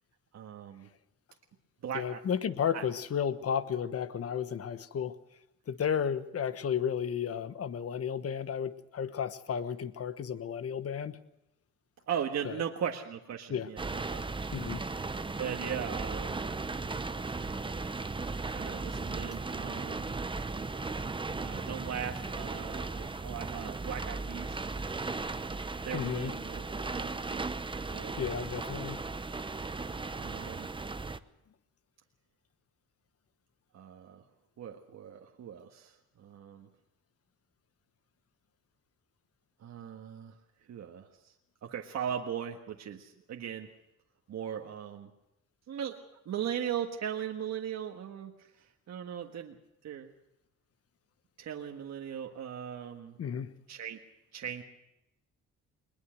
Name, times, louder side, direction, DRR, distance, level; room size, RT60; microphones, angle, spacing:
voice 1, 0.3-0.9 1.8-2.2 2.7-2.8 12.1-14.4 15.4-16.4 18.5-20.1 21.4-24.6 25.8-27.4 27.9-28.1 28.6-28.9 30.2-30.7 33.7-34.2 34.6-36.7 39.6-40.4 40.7-41.3 41.6-43.7 44.3-45.1 45.7-49.6 49.8-50.1 51.4-53.2 53.7-54.0 54.3-54.6, right 9 dB, 60° right, 2 dB, 1.6 m, -39 dB
voice 2, 1.9-5.1 5.7-11.2 12.4-12.6 13.5-13.7 14.5-14.8 25.9-26.3 28.2-29.0 53.2-53.5, left 8 dB, 50° left, 12 dB, 1.3 m, -33 dB
sound 1, 13.8-31.2, right 3 dB, 15° right, 0.9 m, -36 dB
21.0 x 20.5 x 6.4 m, 0.89 s
cardioid pair, 90°, 30 cm